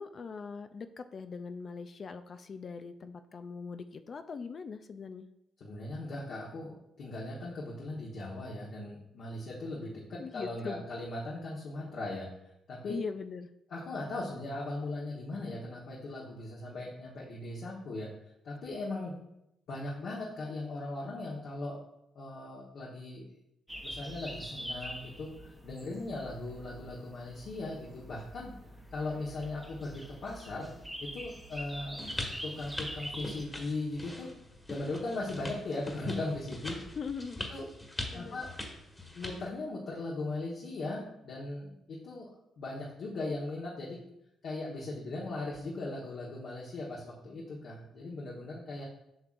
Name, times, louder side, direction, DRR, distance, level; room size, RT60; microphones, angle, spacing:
voice 1, 0.0-5.3 10.2-10.8 12.9-13.5 37.0-37.4 38.1-38.4, left 5 dB, 45° left, 9 dB, 0.4 m, -41 dB
voice 2, 5.6-12.3 12.7-13.0 13.7-18.1 18.4-19.1 19.7-21.8 22.1-23.3 23.8-28.5 28.9-30.7 31.0-32.0 32.4-34.3 34.7-36.8 37.5-37.6 38.1-38.5 39.1-42.3 42.6-44.0 44.4-48.8, left 2 dB, 65° left, -5 dB, 1.3 m, -38 dB
sound 1, 23.7-33.4, equal, ahead, 1.0 m, -45 dB
sound 2, 32.0-39.5, left 1 dB, 15° left, 1.4 m, -42 dB
7.9 x 5.9 x 2.6 m, 0.84 s
cardioid pair, 90°, 0 cm